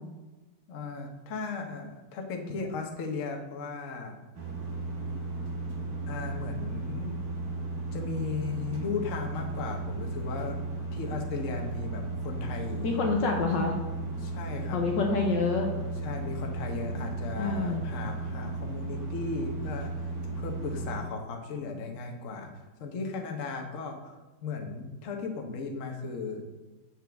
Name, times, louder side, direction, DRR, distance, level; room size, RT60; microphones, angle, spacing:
voice 1, 0.7-4.1 6.1-7.2 7.9-10.6 10.9-13.0 14.2-14.8 16.0-19.9 20.4-22.5 22.8-26.4, left 4 dB, 50° left, 2 dB, 1.0 m, -36 dB
sound 1, 4.4-21.0, right 2 dB, 50° right, 1.4 m, -35 dB
voice 2, 12.8-13.7 14.7-15.7 17.4-17.9, left 4 dB, 65° left, 1 dB, 1.3 m, -27 dB
7.7 x 6.4 x 3.5 m, 1.2 s
omnidirectional pair, 2.4 m